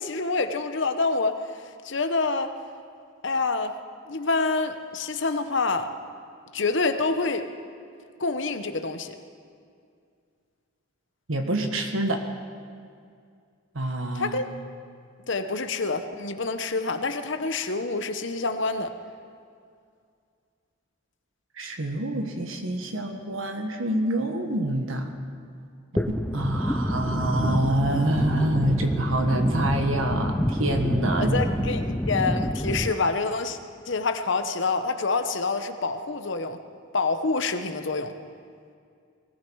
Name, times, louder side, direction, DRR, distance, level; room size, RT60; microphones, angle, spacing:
voice 1, 0.0-1.4 1.8-2.5 3.2-3.7 4.1-5.9 6.5-7.5 8.2-9.2 14.1-14.5 15.3-18.9 31.2-33.6 33.9-36.6 36.9-38.1, left 3 dB, 60° left, 8 dB, 0.9 m, -27 dB
voice 2, 11.3-12.2 13.7-14.4 21.6-25.1 26.1-31.7, right 1 dB, 80° right, 5 dB, 1.6 m, -26 dB
sound 1, 26.0-32.9, equal, 5° left, 0.5 m, -27 dB
20.0 x 14.5 x 4.8 m, 2.3 s
head